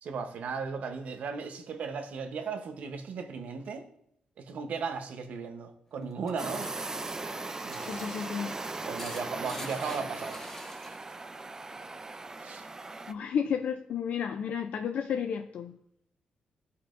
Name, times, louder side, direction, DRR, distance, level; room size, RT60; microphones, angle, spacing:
voice 1, 0.0-3.8 4.4-6.7 7.6-8.1 8.9-10.4 12.4-12.6, right 5 dB, 70° right, 0.9 m, -36 dB
sound 1, 6.0-11.3 11.5-12.5, left 2 dB, 20° left, 1.2 m, -47 dB
sound 2, 6.4-13.1, right 3 dB, 20° right, 0.4 m, -38 dB
voice 2, 7.8-8.5 13.1-15.8, left 7 dB, 70° left, 0.4 m, -32 dB
14.0 x 5.6 x 2.6 m
cardioid pair, 110°, 3 cm